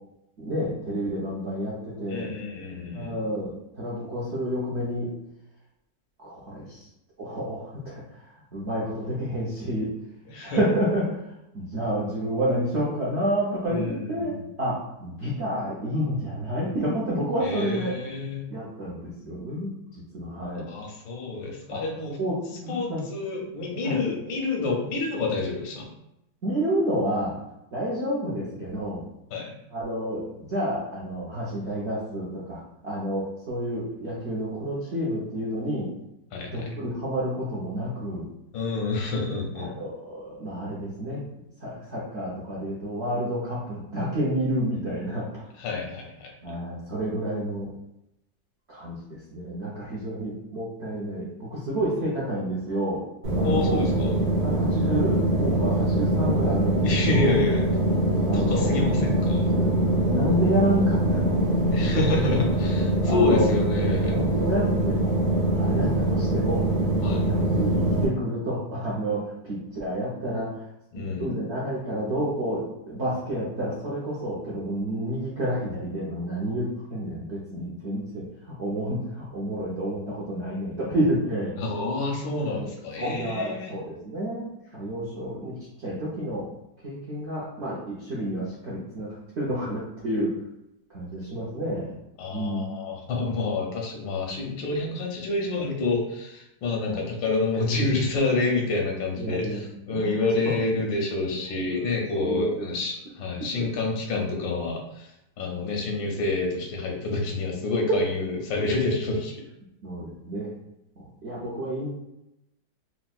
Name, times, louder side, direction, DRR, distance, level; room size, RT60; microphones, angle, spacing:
voice 1, 0.4-2.3 2.9-5.1 6.2-6.9 7.2-10.0 10.4-17.9 18.5-20.7 21.7-21.8 22.2-23.0 23.8-24.0 26.4-27.4 27.7-29.0 29.7-35.9 36.5-38.3 39.5-41.2 41.6-45.5 46.4-47.7 48.7-53.0 53.4-53.8 54.4-57.3 58.3-59.0 59.5-61.9 62.2-62.3 63.1-63.5 64.1-65.2 65.6-66.7 67.2-70.6 70.9-81.6 82.5-86.5 86.8-90.4 90.9-91.9 92.3-92.7 96.8-97.0 99.2-100.1 100.5-100.6 101.7-101.9 102.1-102.6 103.6-103.7 109.8-110.5 111.0-111.9, equal, 70° right, -7 dB, 0.6 m, -30 dB
voice 2, 2.1-3.2 10.3-10.6 13.7-14.5 17.4-18.4 20.7-22.2 22.7-25.9 29.3-29.5 36.3-36.7 38.5-39.7 45.6-46.3 53.4-54.2 56.8-57.6 58.3-59.5 61.7-64.2 67.0-67.3 70.9-71.3 81.6-83.8 92.2-105.1 105.4-109.3, left 3 dB, 85° left, 0 dB, 1.5 m, -28 dB
sound 1, 53.2-68.1, right 1 dB, 85° right, 1.9 m, -23 dB
4.3 x 2.1 x 2.3 m, 0.86 s
omnidirectional pair, 2.0 m